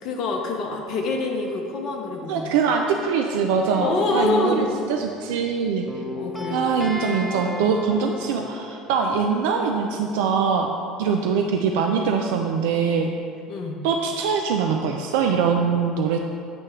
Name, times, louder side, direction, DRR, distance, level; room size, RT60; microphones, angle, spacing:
voice 1, 0.0-2.5 3.8-4.8 6.2-6.7 13.5-13.8, left 3 dB, 55° left, 2 dB, 0.6 m, -26 dB
voice 2, 2.3-5.9 6.5-10.7 11.0-13.1 13.8-16.2, right 6 dB, 70° right, 2 dB, 0.3 m, -23 dB
sound 1, 3.7-5.6 5.9-9.0, left 2 dB, ahead, 0.6 m, -35 dB
7.7 x 2.8 x 4.5 m, 2.4 s
hypercardioid pair, 65°, 0 cm